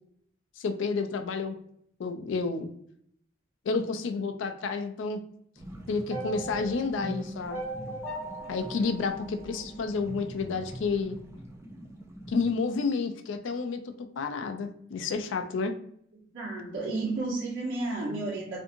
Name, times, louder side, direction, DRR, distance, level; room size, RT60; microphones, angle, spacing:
voice 1, 0.6-1.6 2.0-2.7 3.7-5.2 5.9-7.6 8.5-11.2 12.3-15.7, left 4 dB, 80° left, 6 dB, 0.4 m, -30 dB
sound 1, 5.6-12.5, right 1 dB, 15° right, 0.4 m, -43 dB
sound 2, 6.1-10.3, right 1 dB, 15° left, 1.3 m, -40 dB
voice 2, 16.3-18.6, right 2 dB, 70° right, -11 dB, 1.1 m, -32 dB
2.7 x 2.5 x 2.6 m, 0.67 s
head